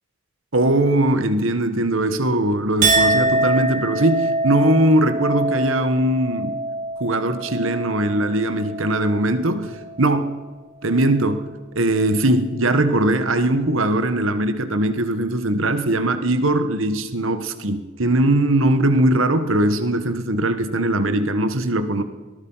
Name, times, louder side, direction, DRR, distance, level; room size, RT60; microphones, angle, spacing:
voice 1, 0.5-6.6 7.0-10.4 10.8-22.0, right 1 dB, 65° right, 1.5 m, -20 dB
Chink clink, 2.8-9.4 9.8-10.3, right 2 dB, 40° right, 3.4 m, -24 dB
23.0 x 19.5 x 5.7 m
head